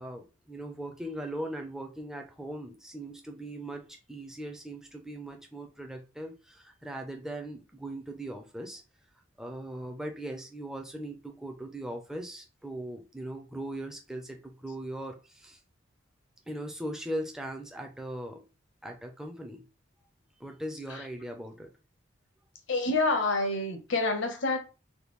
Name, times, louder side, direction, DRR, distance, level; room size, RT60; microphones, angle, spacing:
voice 1, 0.0-8.8 9.4-15.6 16.5-18.4 18.8-19.7 20.4-21.7, right 1 dB, 5° right, 0.4 m, -39 dB
voice 2, 22.7-24.6, left 2 dB, 60° left, 0.8 m, -27 dB
3.5 x 2.2 x 3.0 m
head